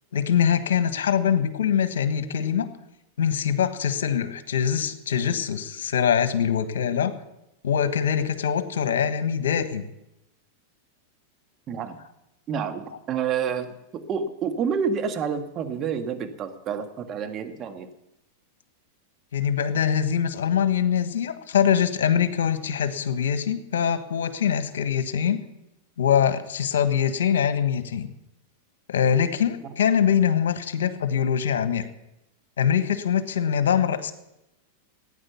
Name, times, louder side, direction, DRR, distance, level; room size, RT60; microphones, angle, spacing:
voice 1, 0.1-2.7 3.2-7.1 7.6-9.8 19.3-25.4 26.0-28.1 28.9-31.8 32.6-34.1, left 8 dB, 85° left, 10 dB, 1.3 m, -23 dB
voice 2, 11.7-12.0 12.5-17.9, right 6 dB, 35° right, 7 dB, 1.7 m, -29 dB
15.5 x 9.9 x 7.1 m, 0.90 s
hypercardioid pair, 115°, 0 cm